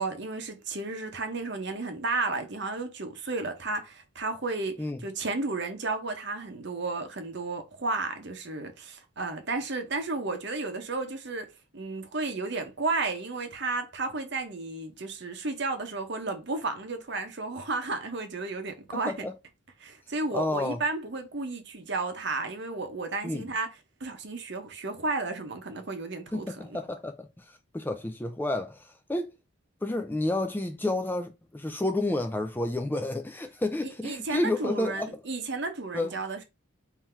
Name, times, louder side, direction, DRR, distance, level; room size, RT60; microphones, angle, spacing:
voice 1, 0.0-19.2 19.8-23.7 24.0-26.8 33.8-36.4, right 3 dB, 55° right, 0.9 m, -33 dB
voice 2, 18.9-19.3 20.3-20.8 23.2-23.4 26.3-29.3 29.8-35.2 35.9-36.1, left 1 dB, 10° left, 0.3 m, -30 dB
3.7 x 2.8 x 4.4 m
head